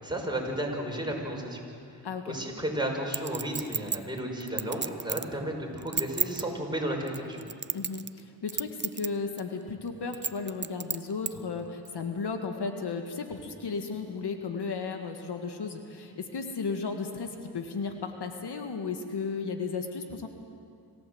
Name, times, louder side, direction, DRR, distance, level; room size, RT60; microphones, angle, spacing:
voice 1, 0.0-1.6 1.9-2.0 2.3-7.4, right 1 dB, 10° right, -1 dB, 5.5 m, -33 dB
voice 2, 2.0-2.4 7.7-20.3, left 4 dB, 75° left, 5 dB, 1.8 m, -34 dB
Chink clink, 3.1-5.3 5.8-6.4 7.1-8.2 8.5-9.1 9.4-9.5 10.1-11.3 11.9-12.0, right 5 dB, 25° right, 0.7 m, -31 dB
26.5 x 15.0 x 7.9 m, 2.4 s
cardioid pair, 55°, 41 cm